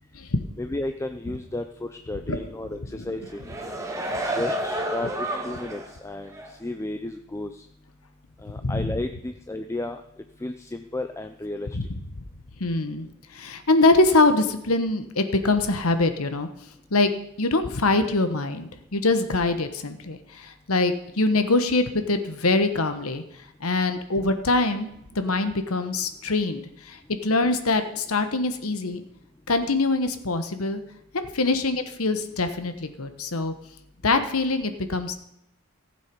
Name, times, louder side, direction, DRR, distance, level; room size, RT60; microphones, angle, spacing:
voice 1, 0.6-3.4 4.3-6.3 6.6-7.6 8.4-10.0 10.4-11.7, left 2 dB, 15° left, 7 dB, 0.4 m, -33 dB
sound 1, 3.2-5.9 6.3-6.5, right 1 dB, 15° right, 1.5 m, -30 dB
voice 2, 8.6-8.9 11.7-11.9 12.6-13.1 13.3-16.5 16.9-17.1 17.4-23.2 23.6-24.9 25.1-29.0 29.5-30.8 31.1-33.5 34.0-35.1, left 2 dB, 70° left, 9 dB, 1.2 m, -23 dB
15.5 x 7.5 x 5.3 m, 0.81 s
head